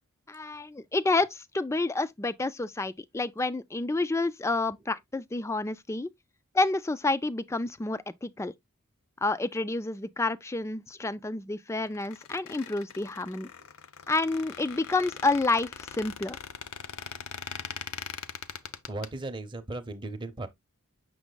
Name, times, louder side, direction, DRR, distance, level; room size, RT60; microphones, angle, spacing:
voice 1, 0.3-6.1 6.5-8.5 9.2-13.5 14.1-16.4, left 2 dB, 10° left, 0.3 m, -29 dB
Squeak, 11.9-19.1, left 7 dB, 70° left, 0.6 m, -41 dB
voice 2, 18.5-20.5, right 2 dB, 20° right, 0.7 m, -38 dB
7.1 x 6.0 x 2.2 m
head